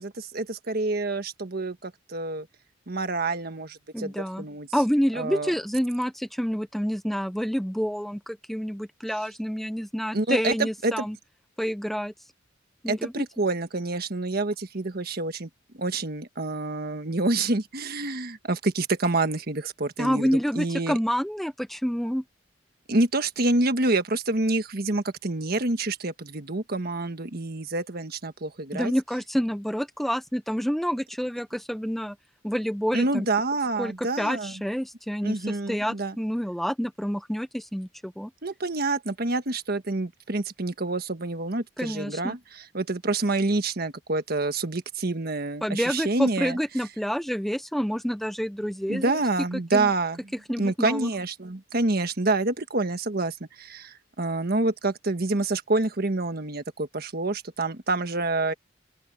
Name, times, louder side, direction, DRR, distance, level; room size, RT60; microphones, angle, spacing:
voice 1, 0.0-2.5 2.9-4.7 5.1-5.5 10.1-11.0 12.9-15.5 15.7-21.0 22.9-28.9 32.9-34.5 35.2-36.1 38.4-46.6 48.9-50.2 50.6-58.5, right 2 dB, 55° right, 1.5 m, -27 dB
voice 2, 3.9-4.5 4.7-11.2 11.6-12.1 12.8-13.2 20.0-22.2 28.7-32.2 32.4-33.3 33.8-38.3 41.8-42.4 45.6-49.2 49.7-49.9 50.5-51.1, equal, ahead, 0.7 m, -28 dB
open air
head